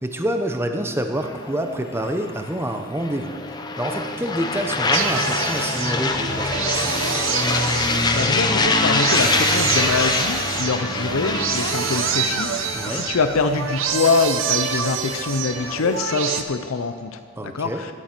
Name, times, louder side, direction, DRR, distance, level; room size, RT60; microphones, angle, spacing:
voice 1, 0.0-6.9 12.7-13.1 17.4-17.8, right 1 dB, 10° right, 5 dB, 0.8 m, -27 dB
sound 1, 1.2-16.0, left 3 dB, 20° left, 0.6 m, -25 dB
sound 2, 4.9-16.4, right 7 dB, 70° right, 0.8 m, -26 dB
sound 3, 5.5-10.0 10.3-13.5, right 1 dB, 50° right, 1.7 m, -49 dB
voice 2, 8.1-17.9, left 4 dB, 85° left, 9 dB, 0.6 m, -24 dB
11.0 x 8.4 x 6.0 m, 2.1 s
head